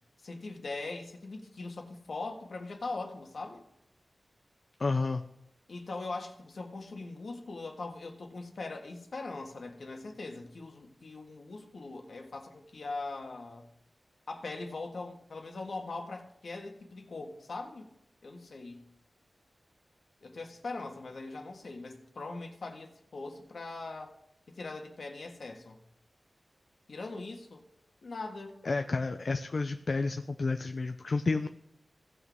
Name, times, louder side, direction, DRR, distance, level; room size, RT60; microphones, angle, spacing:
voice 1, 0.2-3.6 5.7-13.7 14.3-17.9 18.2-18.8 20.2-24.2 24.5-25.8 26.9-27.6 28.0-28.6, left 3 dB, 70° left, 2 dB, 1.6 m, -41 dB
voice 2, 4.8-5.2 28.6-31.5, left 3 dB, 55° left, 7 dB, 0.5 m, -30 dB
17.5 x 6.3 x 3.5 m, 0.78 s
wide cardioid pair, 100°, 0 cm